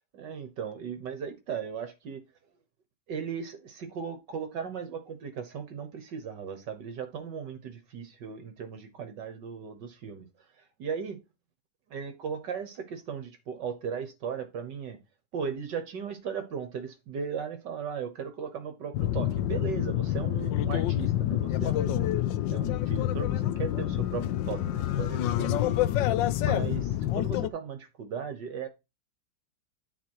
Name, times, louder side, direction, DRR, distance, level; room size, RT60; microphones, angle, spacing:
voice 1, 0.1-2.2 3.1-10.3 10.8-11.2 11.9-15.0 15.3-22.1 22.5-25.8 26.4-28.7, right 6 dB, 65° right, 1.7 m, -37 dB
sound 1, 18.9-27.5, left 13 dB, 75° left, 1.3 m, -27 dB
10.0 x 4.4 x 4.6 m
omnidirectional pair, 2.2 m